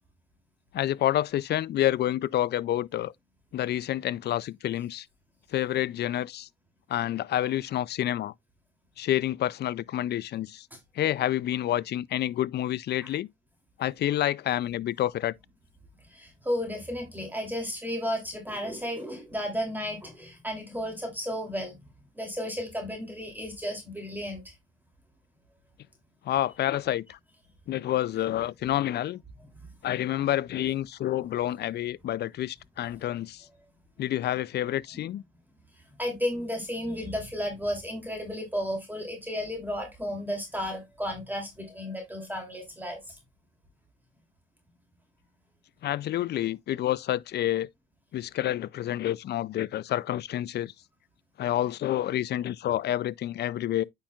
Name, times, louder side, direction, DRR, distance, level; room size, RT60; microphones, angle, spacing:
voice 1, 0.7-3.1 3.5-5.1 5.5-6.5 6.9-8.3 9.0-10.7 11.0-13.3 13.8-15.3 26.3-27.2 27.7-29.2 29.8-33.4 34.0-35.2 45.8-47.7 48.1-50.7 51.4-53.8, left 12 dB, 55° left, 0.4 m, -28 dB
voice 2, 16.1-21.9 22.2-24.5 29.6-30.0 36.0-43.1, equal, 10° right, 2.9 m, -33 dB
8.8 x 5.6 x 2.4 m
cardioid pair, 90°, 20 cm